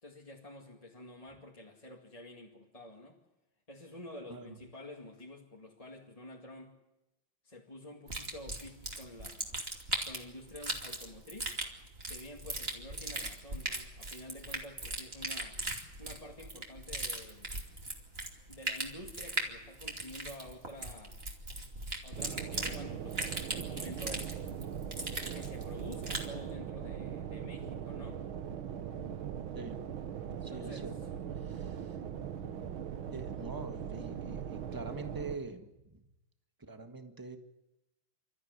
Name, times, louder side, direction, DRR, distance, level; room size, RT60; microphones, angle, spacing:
voice 1, 0.0-3.2 3.7-6.8 7.4-9.7 10.0-11.5 12.1-15.6 16.0-17.5 18.5-21.2 22.0-24.3 25.3-28.2 30.5-30.9, left 1 dB, 15° left, -2 dB, 2.3 m, -49 dB
sound 1, 8.1-26.3, right 2 dB, 25° right, 2.9 m, -39 dB
sound 2, 22.2-35.4, right 8 dB, 75° right, 1.9 m, -40 dB
voice 2, 29.5-29.9 30.4-30.9 31.3-32.0 33.1-36.1 36.7-37.4, right 3 dB, 10° right, 6 dB, 1.4 m, -44 dB
28.0 x 13.5 x 9.6 m, 0.95 s
omnidirectional pair, 2.3 m